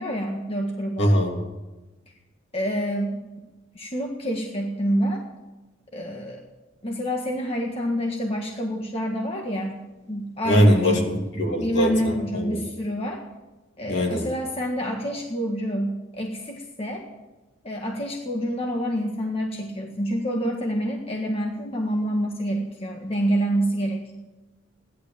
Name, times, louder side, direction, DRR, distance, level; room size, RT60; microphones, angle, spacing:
voice 1, 0.0-1.2 2.5-3.2 3.7-5.2 5.9-6.4 6.8-11.1 11.6-13.2 13.8-17.1 17.6-24.1, equal, 30° left, 0 dB, 1.7 m, -27 dB
voice 2, 1.0-1.3 10.4-12.6 13.9-14.3, equal, 60° left, 1 dB, 3.3 m, -21 dB
17.0 x 11.5 x 7.3 m, 1.1 s
head